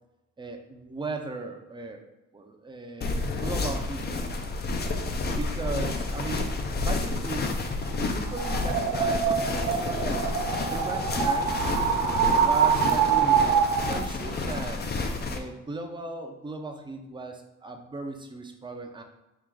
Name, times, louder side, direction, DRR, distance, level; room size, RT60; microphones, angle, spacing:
voice 1, 0.4-2.0 2.3-4.3 5.3-7.6 7.9-10.3 10.6-11.6 12.3-14.8 15.3-19.0, right 3 dB, 15° right, 3 dB, 0.6 m, -37 dB
sound 1, 3.0-15.4, left 3 dB, 35° left, 0.6 m, -30 dB
sound 2, 8.3-14.0, right 7 dB, 75° right, 0.7 m, -25 dB
4.5 x 2.5 x 3.8 m, 0.99 s
cardioid pair, 90°, 30 cm